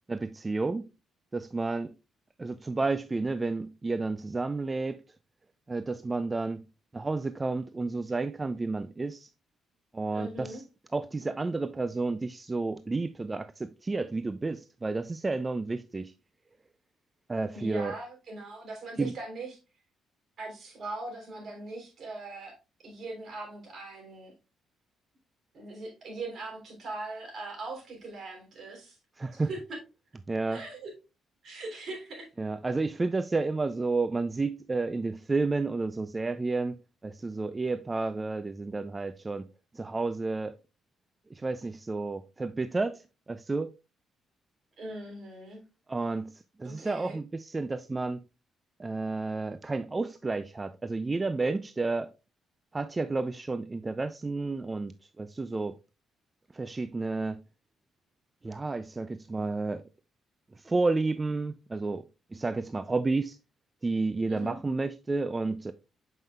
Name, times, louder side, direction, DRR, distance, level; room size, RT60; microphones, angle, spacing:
voice 1, 0.1-0.9 1.3-1.9 2.4-5.0 5.7-6.7 6.9-9.3 9.9-10.6 10.9-16.1 17.3-18.0 19.0-19.1 29.2-29.5 30.3-30.6 32.4-36.8 37.0-39.5 39.7-40.6 41.3-43.7 45.9-48.2 48.8-52.1 52.7-54.9 55.2-55.8 56.5-57.4 58.4-59.8 60.6-62.0 62.3-63.4 63.8-65.7, right 3 dB, 25° right, 0.3 m, -31 dB
voice 2, 10.1-10.6 17.5-19.6 20.4-22.6 22.8-24.3 25.5-29.0 29.3-29.8 30.5-30.9 31.4-32.3 44.8-45.6 46.6-47.2 64.3-64.6, right 2 dB, 55° right, 3.2 m, -40 dB
7.5 x 5.4 x 2.4 m
cardioid pair, 90°, 0 cm